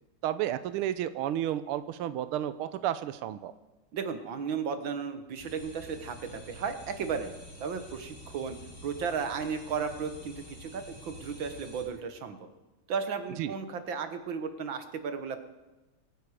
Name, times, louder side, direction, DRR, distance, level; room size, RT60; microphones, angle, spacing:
voice 1, 0.2-3.5 13.4-13.6, right 12 dB, 80° right, 12 dB, 1.6 m, -32 dB
voice 2, 3.9-8.6 8.8-12.5 12.9-15.4, right 6 dB, 65° right, 8 dB, 1.9 m, -34 dB
sound 1, 5.4-11.8, equal, 70° left, 7.0 m, -48 dB
25.5 x 10.0 x 4.9 m, 1.1 s
omnidirectional pair, 2.4 m